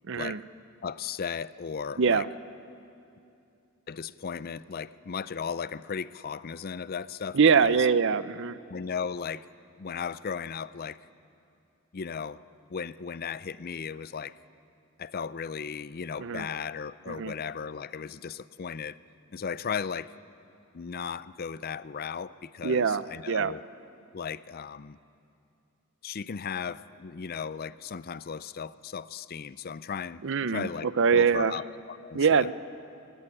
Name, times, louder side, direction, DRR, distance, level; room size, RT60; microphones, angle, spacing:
voice 1, 0.1-0.4 2.0-2.3 7.3-8.6 16.2-16.5 17.1-17.3 22.6-23.5 30.2-31.6 32.1-32.5, right 6 dB, 60° right, 15 dB, 0.6 m, -24 dB
voice 2, 0.8-2.2 3.9-7.9 8.7-9.5 9.8-11.0 11.9-12.4 12.7-14.3 15.0-19.0 19.3-20.1 20.7-23.6 24.1-25.0 26.0-30.2 30.5-32.5, left 6 dB, 45° left, 17 dB, 0.4 m, -36 dB
23.0 x 17.0 x 9.9 m, 2.6 s
head